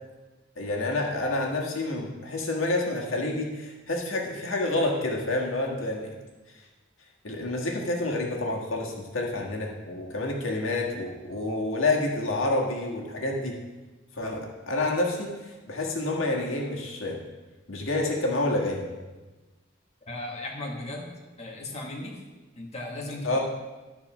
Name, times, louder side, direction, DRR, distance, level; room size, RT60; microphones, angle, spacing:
voice 1, 0.6-6.1 7.2-13.6 14.2-17.2 17.7-18.9 23.2-23.4, left 2 dB, 80° left, -1 dB, 1.6 m, -28 dB
voice 2, 20.1-21.1 21.4-22.1 22.6-23.3, left 1 dB, 35° left, -1 dB, 1.5 m, -36 dB
12.5 x 4.4 x 6.0 m, 1.2 s
head